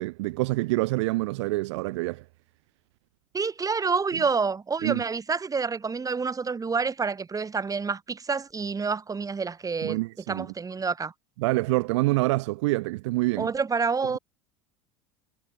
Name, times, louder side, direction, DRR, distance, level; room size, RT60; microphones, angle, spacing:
voice 1, 0.0-2.2 4.8-5.0 9.8-10.5 11.4-13.5, right 21 dB, 65° right, 0.7 m, -26 dB
voice 2, 3.3-10.0 10.3-11.1 13.4-14.2, right 5 dB, 20° right, 4.7 m, -28 dB
figure-of-eight pair, 75°, 16 cm